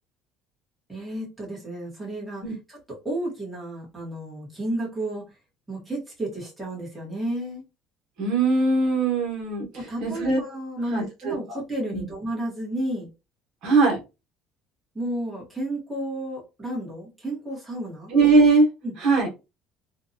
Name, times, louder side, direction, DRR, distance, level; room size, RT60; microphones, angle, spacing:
voice 1, 0.9-2.4 2.7-5.2 5.7-7.6 9.7-13.1 14.9-18.1 18.8-18.9, right 1 dB, 5° right, -5 dB, 1.1 m, -32 dB
voice 2, 8.2-9.7 10.0-10.4 10.9-11.4 11.9-12.0 13.6-14.0 18.1-18.7 19.0-19.3, right 3 dB, 55° right, 0 dB, 1.1 m, -20 dB
2.6 x 2.3 x 2.6 m, 0.27 s
cardioid pair, 165°, 0 cm